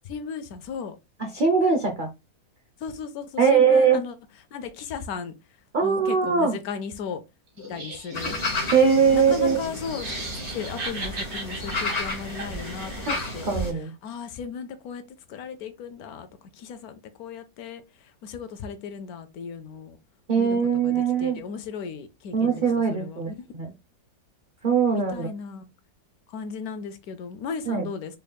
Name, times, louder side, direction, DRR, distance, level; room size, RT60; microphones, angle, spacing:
voice 1, 0.0-1.0 2.8-4.1 4.5-5.3 5.8-7.2 7.7-8.5 9.1-13.5 13.8-15.0 15.3-16.3 16.5-20.0 20.4-23.5 24.9-25.7 26.3-28.2, left 6 dB, 70° left, 1.0 m, -36 dB
voice 2, 1.3-2.1 3.4-4.0 5.7-6.6 8.7-9.6 13.1-13.9 20.3-21.4 22.3-23.7 24.6-25.3 27.7-27.9, right 6 dB, 65° right, 0.5 m, -21 dB
Laughter, 7.6-13.4, right 2 dB, 45° right, 1.4 m, -38 dB
sound 1, 8.1-13.7, left 2 dB, 30° left, 0.9 m, -32 dB
4.1 x 3.4 x 2.2 m
omnidirectional pair, 1.8 m